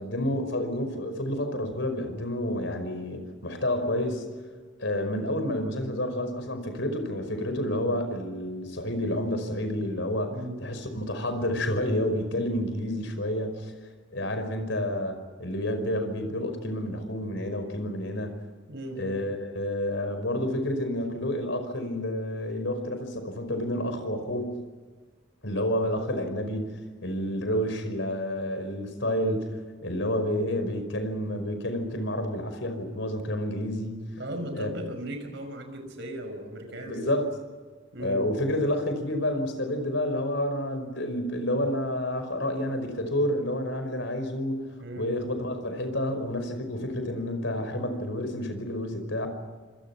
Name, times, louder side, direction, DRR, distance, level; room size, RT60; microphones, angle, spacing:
voice 1, 0.0-4.3 4.8-10.3 10.6-13.7 14.1-18.3 19.0-24.5 25.4-26.7 27.0-29.5 29.8-34.0 34.5-34.7 36.8-37.3 38.0-44.7 45.0-49.3, left 1 dB, 65° left, 8 dB, 5.4 m, -29 dB
voice 2, 18.7-19.1 34.2-37.1 37.9-38.3 44.8-45.2, right 1 dB, 60° right, 6 dB, 5.8 m, -37 dB
27.5 x 26.0 x 6.0 m, 1.4 s
head